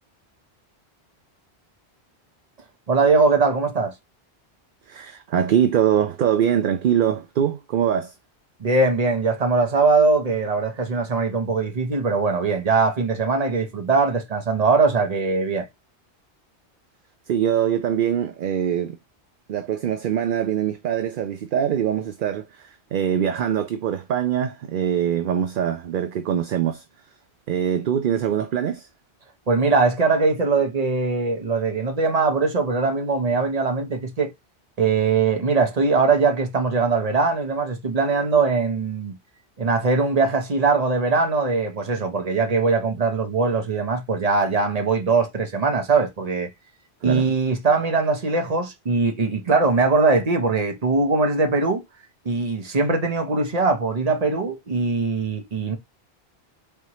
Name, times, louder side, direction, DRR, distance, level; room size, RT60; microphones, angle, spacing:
voice 1, 2.9-3.9 8.6-15.7 29.5-34.3 34.8-39.2 39.6-46.5 47.0-51.8 52.2-55.8, right 4 dB, 40° right, 1.0 m, -21 dB
voice 2, 4.9-8.1 17.3-19.0 19.5-26.8 27.5-28.9 47.0-47.3, right 9 dB, 60° right, 0.7 m, -23 dB
4.5 x 3.4 x 3.0 m
omnidirectional pair, 1.1 m